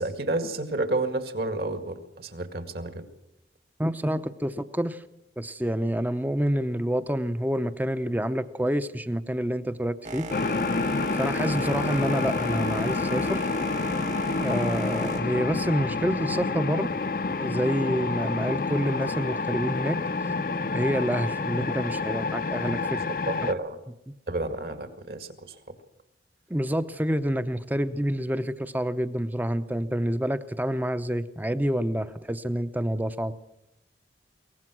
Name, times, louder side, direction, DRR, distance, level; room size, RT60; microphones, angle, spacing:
voice 1, 0.0-3.0 22.8-23.8 24.3-25.6, right 2 dB, 60° right, 8 dB, 2.1 m, -31 dB
voice 2, 3.8-5.0 5.4-10.3 11.1-13.5 14.4-16.9 17.4-20.0 20.7-23.0 23.4-23.5 26.5-33.3, equal, 10° right, 12 dB, 0.7 m, -28 dB
Boat Water vehicle, 10.0-16.4, right 2 dB, 40° right, 1.6 m, -37 dB
sound 1, 10.3-23.5, left 3 dB, 50° left, 0.7 m, -28 dB
23.0 x 18.5 x 6.1 m, 0.82 s
head